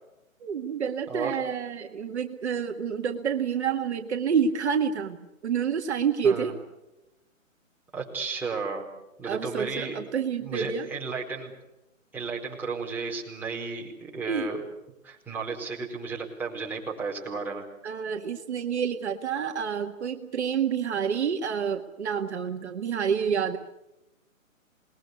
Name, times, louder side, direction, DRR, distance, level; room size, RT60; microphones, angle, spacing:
voice 1, 0.4-5.2 5.4-6.6 9.2-10.9 14.3-14.5 17.8-23.6, right 7 dB, 55° right, 5 dB, 1.8 m, -28 dB
voice 2, 6.2-6.5 7.9-8.9 9.2-10.0 10.4-11.5 12.1-14.6 15.0-17.7, right 4 dB, 5° right, -4 dB, 4.5 m, -33 dB
27.5 x 21.0 x 8.4 m, 0.91 s
hypercardioid pair, 145°, 40 cm